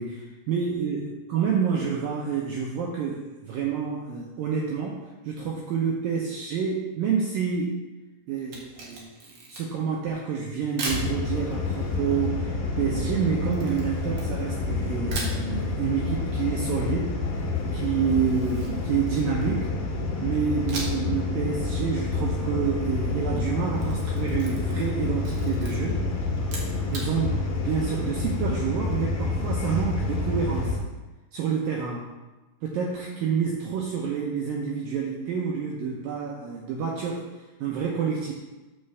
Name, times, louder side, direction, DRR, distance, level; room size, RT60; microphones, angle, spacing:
voice 1, 0.0-7.8 8.3-17.1 17.7-19.7 20.2-26.0 26.9-30.8 31.3-32.0 32.6-37.3 37.6-38.3, right 6 dB, 80° right, -2 dB, 2.1 m, -28 dB
Camera, 8.4-9.9 10.8-11.1 13.5-14.7 15.1-15.4 18.1-19.6 20.7-21.1 21.4-21.5 23.5-24.9 25.2-25.7 26.4-27.1, right 2 dB, 55° right, 2.4 m, -37 dB
sound 1, 10.9-30.8, left 3 dB, 60° left, 3.1 m, -28 dB
8.9 x 4.4 x 6.9 m, 1.1 s
omnidirectional pair, 5.1 m